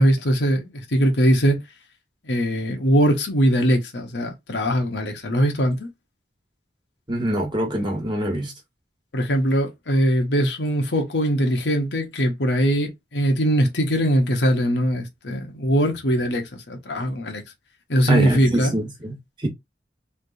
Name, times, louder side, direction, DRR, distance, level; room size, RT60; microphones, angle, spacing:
voice 1, 0.0-1.6 2.2-5.9 9.1-17.4 17.9-18.7, equal, 80° left, 1.1 m, -21 dB
voice 2, 7.1-8.5 18.1-19.5, right 1 dB, 25° right, 1.3 m, -25 dB
3.4 x 2.9 x 2.7 m
head